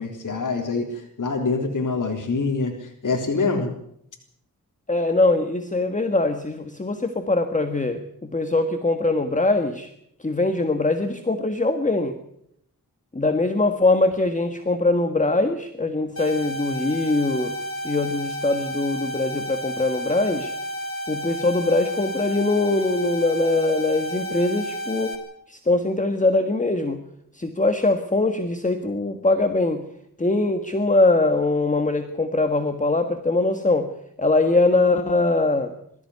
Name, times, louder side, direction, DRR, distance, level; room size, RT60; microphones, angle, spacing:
voice 1, 0.0-3.7, left 4 dB, 60° left, 1 dB, 3.6 m, -25 dB
voice 2, 4.9-9.9 10.2-12.1 13.1-17.5 17.8-20.5 21.1-25.2 25.5-27.0 27.3-29.8 30.2-33.9 34.2-35.7, left 2 dB, 20° left, 6 dB, 1.6 m, -22 dB
sound 1, 16.2-25.2, equal, 40° left, 4.7 m, -31 dB
22.5 x 14.0 x 9.6 m, 0.74 s
wide cardioid pair, 95°, 35 cm